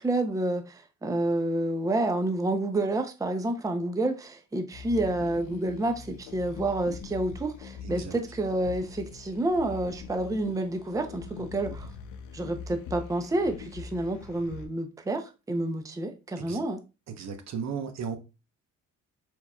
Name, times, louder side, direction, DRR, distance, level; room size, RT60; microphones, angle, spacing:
voice 1, 0.0-11.9 12.3-16.8, right 2 dB, 10° right, 0.6 m, -29 dB
sound 1, 4.7-14.7, left 6 dB, 80° left, 0.6 m, -42 dB
voice 2, 7.8-8.1 16.4-16.6 17.1-18.2, right 6 dB, 60° right, 0.9 m, -35 dB
4.5 x 4.3 x 2.2 m
cardioid pair, 90°, 30 cm